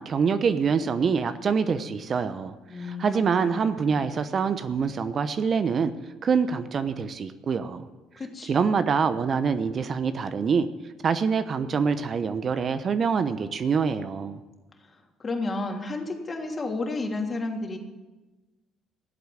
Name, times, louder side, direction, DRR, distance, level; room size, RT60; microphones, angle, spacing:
voice 1, 0.0-5.9 6.2-7.8 8.4-10.7 11.0-14.4, right 6 dB, 45° right, 11 dB, 1.0 m, -25 dB
voice 2, 2.7-4.0 8.2-8.6 15.2-17.8, left 2 dB, 35° left, 2 dB, 3.1 m, -32 dB
16.5 x 8.1 x 8.8 m, 1.2 s
hypercardioid pair, 55°, 0 cm